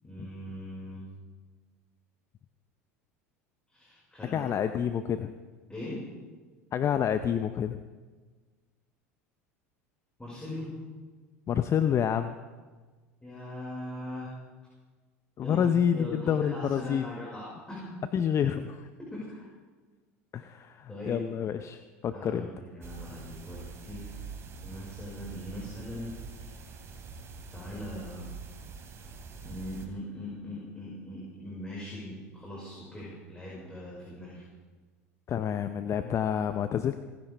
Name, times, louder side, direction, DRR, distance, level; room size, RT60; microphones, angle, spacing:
voice 1, 0.0-1.0 3.7-4.5 5.7-6.0 10.2-10.7 13.2-14.3 15.4-15.6 15.9-18.0 19.0-19.5 20.9-21.2 22.1-24.1 24.6-26.5 27.5-28.3 29.4-34.4, left 1 dB, 10° left, -6 dB, 5.2 m, -40 dB
voice 2, 4.3-5.3 6.7-7.8 11.5-12.3 15.4-17.0 18.1-18.9 20.3-22.5 35.3-37.0, left 8 dB, 35° left, 10 dB, 0.6 m, -28 dB
sound 1, 22.8-29.8, right 5 dB, 35° right, 2.8 m, -44 dB
29.0 x 10.5 x 3.4 m, 1.4 s
hypercardioid pair, 80°, 8 cm